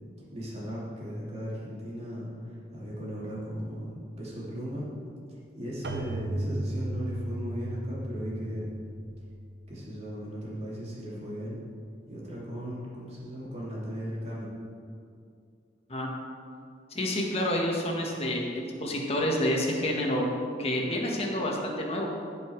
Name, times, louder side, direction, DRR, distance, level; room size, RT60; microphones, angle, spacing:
voice 1, 0.3-4.9 5.3-8.7 9.7-11.6 12.1-14.5, equal, 40° right, -6 dB, 2.9 m, -37 dB
Keyboard (musical), 5.8-10.3, right 1 dB, 65° right, 0.9 m, -36 dB
voice 2, 16.9-20.3 20.6-22.1, left 1 dB, 35° left, -1 dB, 1.6 m, -28 dB
16.0 x 5.7 x 4.7 m, 2.4 s
head